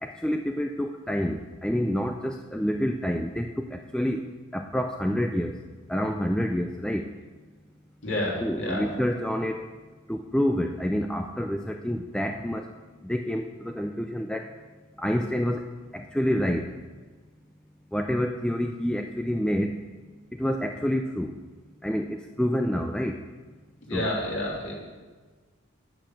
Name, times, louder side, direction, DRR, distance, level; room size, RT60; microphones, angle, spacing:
voice 1, 0.0-4.2 4.5-5.6 5.9-7.0 8.4-9.7 10.1-12.7 13.0-14.5 15.0-15.6 15.9-16.7 17.9-19.7 20.4-21.3 21.8-23.2 23.9-24.1, equal, 5° left, 4 dB, 0.4 m, -28 dB
voice 2, 8.0-8.9 23.9-24.7, left 1 dB, 55° left, -3 dB, 3.2 m, -29 dB
9.8 x 9.1 x 6.4 m, 1.4 s
head